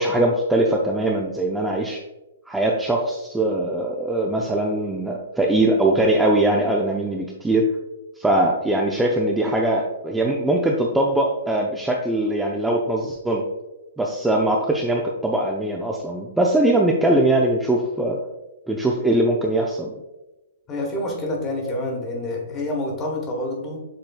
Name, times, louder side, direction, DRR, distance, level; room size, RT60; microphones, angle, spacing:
voice 1, 0.0-2.0 2.5-7.7 8.2-13.4 14.0-18.2 18.7-19.9, right 1 dB, 5° right, -1 dB, 0.4 m, -21 dB
voice 2, 20.7-23.9, left 1 dB, 25° left, 1 dB, 1.2 m, -27 dB
6.8 x 3.0 x 2.3 m, 1.0 s
hypercardioid pair, 135°, 0 cm